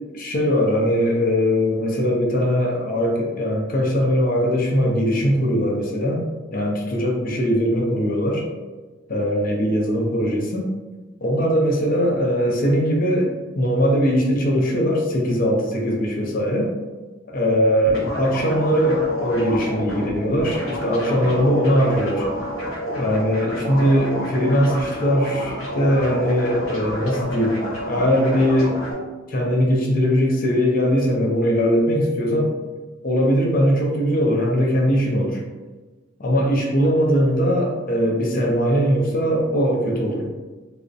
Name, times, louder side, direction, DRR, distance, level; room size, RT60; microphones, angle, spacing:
voice 1, 0.1-6.2 6.5-8.4 9.1-10.7 11.2-16.7 17.3-22.3 23.0-28.8 29.3-32.5 33.0-35.4 36.2-40.3, equal, 45° left, -1 dB, 0.5 m, -20 dB
sound 1, 17.8-28.9, equal, 85° left, 0.7 m, -29 dB
2.5 x 2.0 x 2.4 m, 1.3 s
head